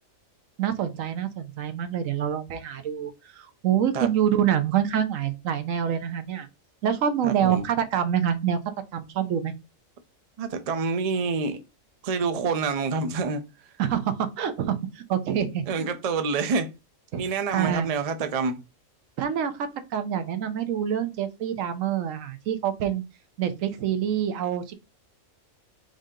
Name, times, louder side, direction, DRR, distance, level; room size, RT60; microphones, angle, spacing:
voice 1, 0.6-6.5 6.8-8.6 8.9-9.5 13.8-15.9 17.1-17.2 17.5-17.9 19.2-23.0 23.4-24.7, right 9 dB, 75° right, 1.1 m, -26 dB
voice 2, 7.2-7.7 10.4-11.6 12.0-13.4 15.3-16.7 17.1-18.6, right 4 dB, 55° right, 0.4 m, -27 dB
5.0 x 2.7 x 3.7 m
omnidirectional pair, 1.4 m